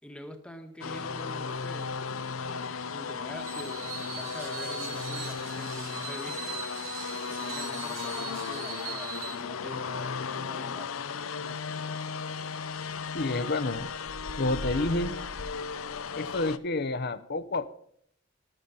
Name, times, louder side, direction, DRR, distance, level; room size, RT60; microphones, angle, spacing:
voice 1, 0.0-2.1 2.4-6.6 7.3-10.9 11.3-11.6, equal, 5° left, 5 dB, 1.4 m, -45 dB
sound 1, 0.8-16.6, left 5 dB, 90° left, 0.7 m, -35 dB
Screech, 3.4-9.4, right 7 dB, 90° right, 2.5 m, -41 dB
voice 2, 13.1-13.9 14.4-15.2 16.2-17.7, left 2 dB, 50° left, 13 dB, 0.8 m, -29 dB
14.0 x 13.0 x 4.0 m, 0.65 s
head